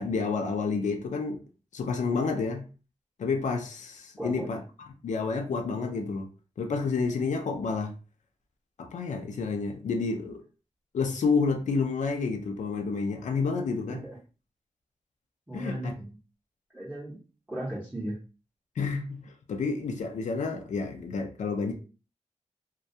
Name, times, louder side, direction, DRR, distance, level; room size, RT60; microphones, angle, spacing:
voice 1, 0.0-1.4 1.7-2.7 3.2-4.6 5.0-6.3 6.6-7.9 8.8-10.4 10.9-14.0 15.5-15.9 18.8-21.7, left 4 dB, 75° left, 0.4 m, -29 dB
voice 2, 4.2-4.5 13.9-14.0 15.5-16.1 16.7-17.2 17.5-18.2, right 1 dB, 10° right, 0.7 m, -36 dB
2.2 x 2.2 x 2.6 m
wide cardioid pair, 170°, 13 cm